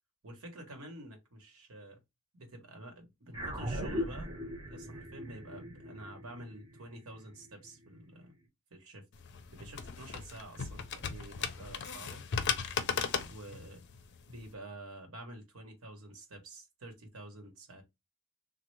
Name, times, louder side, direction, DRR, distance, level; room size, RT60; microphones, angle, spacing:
voice 1, 0.2-2.0 2.3-4.3 4.7-8.3 8.7-9.0 9.5-12.2 13.3-13.8 14.3-17.8, right 1 dB, 90° right, 1.2 m, -49 dB
sound 1, 3.3-8.0, equal, 20° right, 1.0 m, -40 dB
sound 2, 9.1-14.5, left 6 dB, 55° left, 0.5 m, -37 dB
3.2 x 2.3 x 3.2 m
head